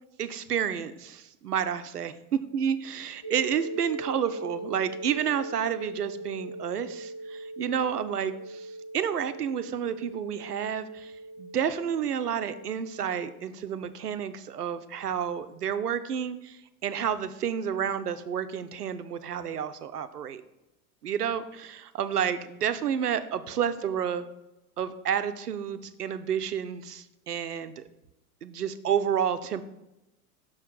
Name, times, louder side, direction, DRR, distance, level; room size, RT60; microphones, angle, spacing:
voice 1, 0.2-8.7 8.9-11.1 11.4-20.4 21.0-24.2 24.8-27.8 28.4-29.6, right 8 dB, 80° right, 12 dB, 0.6 m, -30 dB
sound 1, 3.2-13.2, right 2 dB, 60° left, 2.5 m, -40 dB
6.3 x 6.1 x 3.7 m, 0.94 s
figure-of-eight pair, 85°, 46 cm